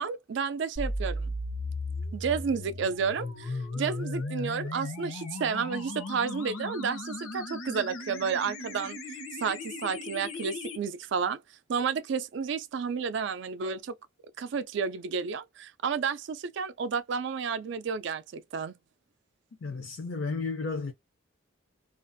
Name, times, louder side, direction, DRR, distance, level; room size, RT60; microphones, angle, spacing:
voice 1, 0.0-1.3 2.1-9.0 9.4-11.4 11.7-13.9 14.4-18.7, right 6 dB, 60° right, 0.3 m, -31 dB
sound 1, 0.8-10.8, left 2 dB, 90° left, 0.8 m, -36 dB
voice 2, 19.6-20.9, left 4 dB, 60° left, 0.4 m, -33 dB
2.4 x 2.3 x 2.5 m
head